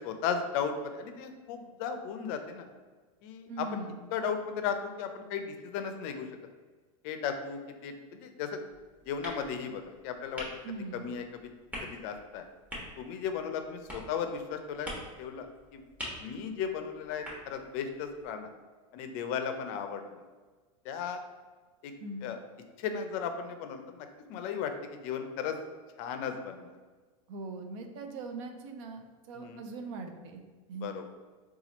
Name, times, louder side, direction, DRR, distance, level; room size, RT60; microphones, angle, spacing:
voice 1, 0.0-2.7 3.2-3.8 4.1-6.3 7.0-8.6 9.0-10.5 10.9-11.5 11.8-12.4 13.0-14.9 15.2-15.8 16.2-18.5 18.9-20.2 20.8-21.2 21.8-21.9 22.2-22.4 22.8-25.6 26.0-26.7 29.4-29.6 30.8-31.0, left 7 dB, 55° left, 7 dB, 0.4 m, -36 dB
voice 2, 3.5-4.0 10.6-11.0 22.0-22.3 27.3-29.0 29.3-30.4 30.7-30.9, right 3 dB, 65° right, 5 dB, 0.5 m, -40 dB
sound 1, 8.7-18.3, equal, 10° right, 1.0 m, -46 dB
2.8 x 2.3 x 4.0 m, 1.4 s
supercardioid pair, 120°, 18 cm